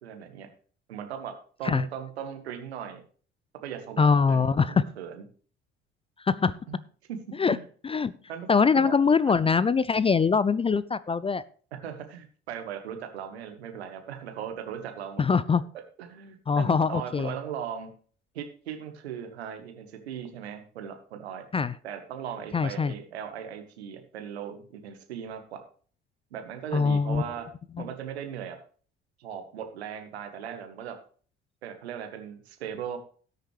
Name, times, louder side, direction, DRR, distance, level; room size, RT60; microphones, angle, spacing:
voice 1, 0.0-0.5 0.9-1.3 1.6-3.0 3.6-5.2 6.7-6.8 7.1-7.2 7.5-7.6 8.3-8.5 8.7-8.9 11.8-15.2 16.0-17.9 18.3-21.4 21.8-25.6 26.3-27.5 27.8-28.6 29.2-31.0 31.6-33.0, right 8 dB, 75° right, 6 dB, 1.5 m, -38 dB
voice 2, 4.0-4.8 6.3-6.6 7.4-7.6 7.8-8.1 8.5-11.4 15.2-15.6 16.5-17.3 21.5-21.7 22.5-22.9 26.7-27.2, left 5 dB, 20° left, 18 dB, 0.4 m, -23 dB
18.0 x 6.6 x 3.3 m, 0.44 s
figure-of-eight pair, 50°, 32 cm